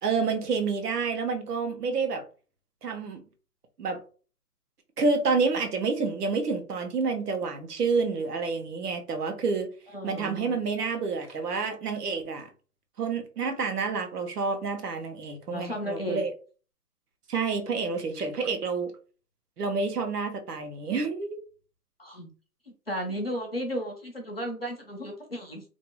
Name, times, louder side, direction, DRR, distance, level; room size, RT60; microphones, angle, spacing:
voice 1, 0.0-2.2 2.8-3.2 3.8-4.0 5.0-9.7 10.0-12.5 13.0-16.3 17.3-18.9 19.6-21.4, right 4 dB, 75° right, 0.9 m, -28 dB
voice 2, 9.9-10.6 15.5-16.2 22.0-22.3 22.9-25.6, equal, 40° left, 0.4 m, -34 dB
2.6 x 2.0 x 2.9 m
hypercardioid pair, 175°, 47 cm